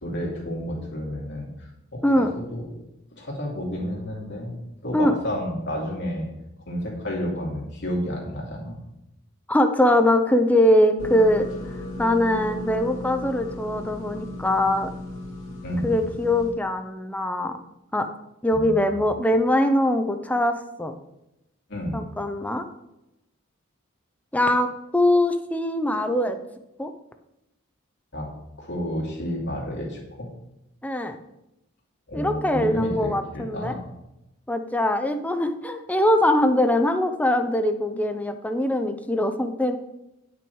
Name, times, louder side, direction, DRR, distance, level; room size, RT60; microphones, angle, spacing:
voice 1, 0.0-2.2 2.5-2.8 3.2-4.6 4.8-6.3 6.7-8.8 15.6-15.9 18.6-18.7 21.7-22.1 28.1-28.3 28.6-30.3 32.1-33.8, equal, 60° left, -2 dB, 2.6 m, -31 dB
voice 2, 9.5-11.5 12.0-14.9 15.8-17.6 17.9-18.1 18.4-20.9 21.9-22.7 24.3-26.4 26.8-26.9 30.8-31.2 32.1-33.8 34.5-39.8, left 1 dB, 5° left, 7 dB, 0.6 m, -22 dB
sound 1, 11.0-16.5, left 2 dB, 75° left, 2.4 m, -36 dB
8.9 x 6.0 x 4.7 m, 0.90 s
head